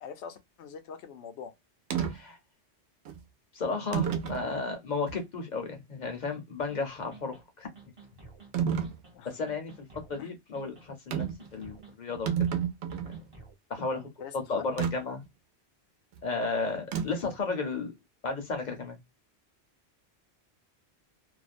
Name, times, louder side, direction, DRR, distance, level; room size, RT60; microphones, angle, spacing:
voice 1, 0.0-1.5 9.1-9.3 10.2-10.3 13.9-14.7, left 7 dB, 80° left, 0.9 m, -44 dB
sound 1, 1.9-2.1 3.1-3.2 3.9-4.5 5.1-5.2 8.5-9.0 11.1-11.5 11.8-11.9 12.1-13.2 14.8-14.9 16.9-17.3, right 8 dB, 75° right, 0.9 m, -29 dB
voice 2, 2.0-2.4 3.5-7.7 9.2-11.3 11.5-12.3 13.0-13.2 13.7-14.0 14.3-15.2 16.2-17.9 18.2-19.0, left 4 dB, 50° left, 0.7 m, -33 dB
sound 2, 6.7-6.8 7.1-7.4 7.8-8.5 8.8-9.2 9.5-10.2 10.5-10.9 11.2-11.9 12.3-12.6 12.9-13.5, right 3 dB, 35° right, 0.7 m, -51 dB
2.5 x 2.0 x 2.4 m
omnidirectional pair, 1.2 m